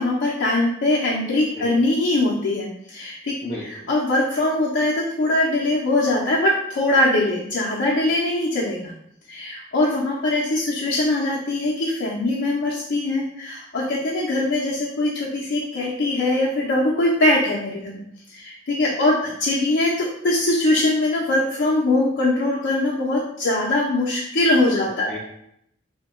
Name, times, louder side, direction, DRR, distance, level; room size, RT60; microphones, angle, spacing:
voice 1, 0.0-3.3 3.9-8.9 9.3-18.0 18.3-25.1, left 2 dB, 85° left, -6 dB, 0.6 m, -22 dB
voice 2, 3.4-3.9 24.8-25.2, left 1 dB, 30° left, -9 dB, 0.6 m, -36 dB
2.8 x 2.2 x 3.5 m, 0.73 s
head